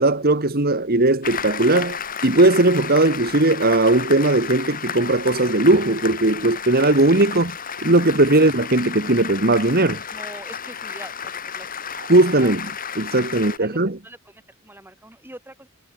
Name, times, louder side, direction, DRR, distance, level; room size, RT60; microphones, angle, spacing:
voice 1, 0.0-7.6 7.8-10.0 12.1-12.7 13.0-14.0, right 2 dB, 45° right, 1.9 m, -18 dB
Applause, 1.2-13.6, left 7 dB, 40° left, 6.5 m, -32 dB
voice 2, 10.1-11.8 12.2-12.5 13.6-15.7, right 1 dB, 10° right, 4.4 m, -43 dB
head